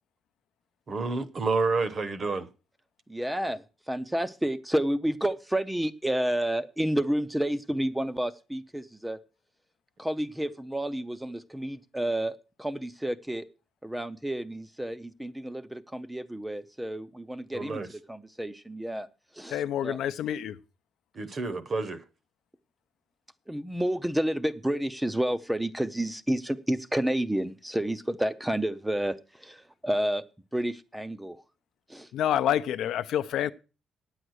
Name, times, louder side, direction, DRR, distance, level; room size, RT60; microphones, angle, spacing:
voice 1, 0.9-2.5 17.5-17.9 21.1-22.0, right 3 dB, 35° right, 0.8 m, -29 dB
voice 2, 3.1-9.2 10.0-13.4 13.8-19.1 19.3-20.0 23.5-30.2 30.5-31.4 31.9-32.1, right 1 dB, 5° right, 0.5 m, -30 dB
voice 3, 19.5-20.6 32.1-33.5, left 10 dB, 75° left, 0.6 m, -27 dB
9.7 x 7.9 x 6.3 m
cardioid pair, 155°, 0 cm